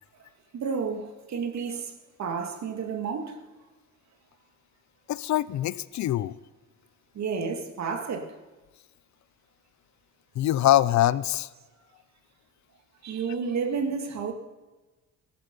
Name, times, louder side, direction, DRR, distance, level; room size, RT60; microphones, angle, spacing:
voice 1, 0.5-1.9 2.2-3.4 7.1-8.3 13.0-14.3, right 5 dB, 65° right, 2.4 m, -31 dB
voice 2, 5.1-6.3 10.3-11.5, left 13 dB, 65° left, 0.7 m, -23 dB
17.0 x 13.5 x 5.5 m
cardioid pair, 90°, 30 cm